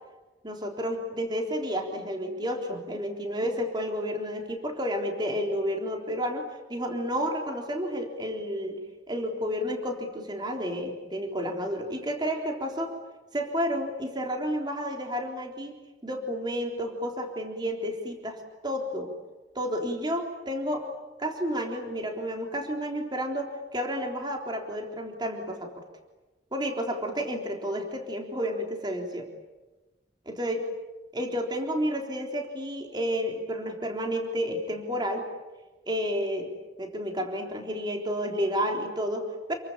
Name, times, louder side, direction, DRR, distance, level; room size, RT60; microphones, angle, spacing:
voice 1, 0.4-8.8 9.1-12.9 13.3-15.8 16.0-18.4 18.6-19.1 19.6-20.9 21.2-25.7 26.5-29.3 30.3-30.6 31.1-35.2 35.9-36.5 36.8-39.5, equal, 25° right, 2 dB, 3.7 m, -31 dB
29.0 x 23.5 x 8.8 m, 1.1 s
head